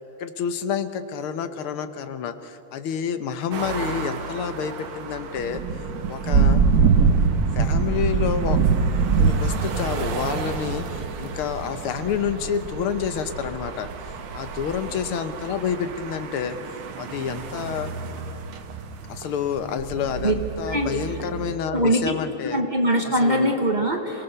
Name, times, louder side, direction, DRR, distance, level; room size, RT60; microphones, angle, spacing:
voice 1, 0.0-5.6 6.1-6.6 7.6-8.6 9.2-13.9 14.3-16.6 17.0-17.9 19.1-22.6 23.0-23.5, left 7 dB, 85° left, 10 dB, 1.9 m, -29 dB
sound 1, 3.5-21.6, right 6 dB, 80° right, 2.1 m, -36 dB
Thunder / Rain, 5.4-14.9, right 5 dB, 55° right, 1.6 m, -22 dB
voice 2, 21.7-22.2 22.5-24.2, right 1 dB, 25° right, 2 dB, 1.5 m, -22 dB
27.5 x 18.5 x 6.8 m, 2.9 s
omnidirectional pair, 2.3 m